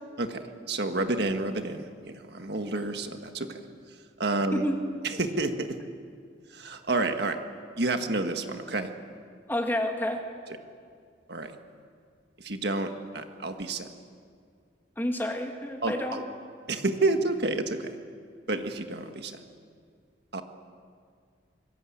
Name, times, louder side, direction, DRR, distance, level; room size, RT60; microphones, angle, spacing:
voice 1, 0.2-3.6 4.2-4.6 5.0-5.8 6.5-7.4 7.8-8.9 11.3-11.5 12.4-13.9 15.8-16.2 16.7-17.9 18.5-19.4 20.3-20.4, right 2 dB, 55° right, 6 dB, 1.7 m, -29 dB
voice 2, 4.5-4.8 9.5-10.2 15.0-16.2, equal, 10° left, 3 dB, 2.2 m, -29 dB
25.5 x 23.5 x 8.7 m, 2.2 s
head